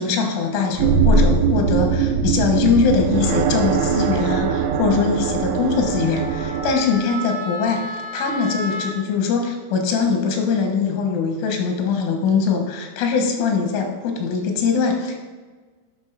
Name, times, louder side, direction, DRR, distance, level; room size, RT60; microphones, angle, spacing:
voice 1, 0.0-15.3, left 5 dB, 90° left, 3 dB, 3.8 m, -22 dB
sound 1, 0.7-6.7, right 5 dB, 85° right, 3.0 m, -20 dB
Wind instrument woodwind instrument, 3.8-9.0, equal, 60° right, 1.4 m, -34 dB
9.0 x 6.1 x 5.7 m, 1.4 s
omnidirectional pair, 5.3 m